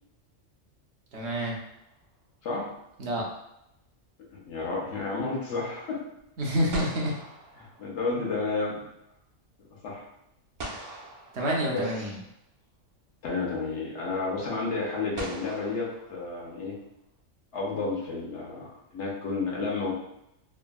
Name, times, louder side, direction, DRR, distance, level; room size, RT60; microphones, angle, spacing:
voice 1, 1.1-1.6 3.0-3.3 6.4-7.1 11.3-12.2, equal, 65° right, -2 dB, 1.0 m, -28 dB
sound 1, 1.2-2.1 6.2-6.3 6.7-8.4 10.6-12.2 13.5-13.6 15.1-16.8, right 2 dB, 50° right, 0.6 m, -42 dB
voice 2, 4.5-6.0 7.6-8.9 9.8-10.1 11.7-12.1 13.2-16.8 17.5-19.9, left 3 dB, 65° left, -3 dB, 1.0 m, -31 dB
3.5 x 2.1 x 2.2 m, 0.82 s
omnidirectional pair, 1.3 m